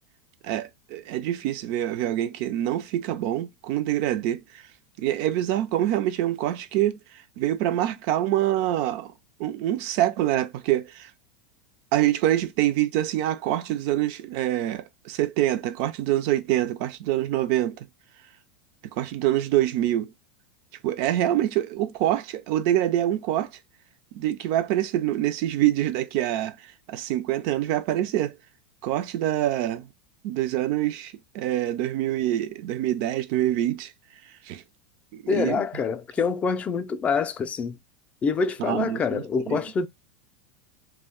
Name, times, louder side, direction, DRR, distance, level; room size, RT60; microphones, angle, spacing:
voice 1, 0.4-4.6 5.0-7.0 7.4-9.1 9.4-11.1 11.9-17.9 18.8-20.1 20.8-23.5 24.1-28.4 28.8-29.9 30.2-33.9 34.5-34.6 35.1-35.6 38.6-39.6, right 13 dB, 55° right, 0.4 m, -25 dB
voice 2, 35.3-37.8 38.2-39.9, left 5 dB, 25° left, 0.4 m, -26 dB
2.4 x 2.2 x 3.5 m
hypercardioid pair, 105°, 5 cm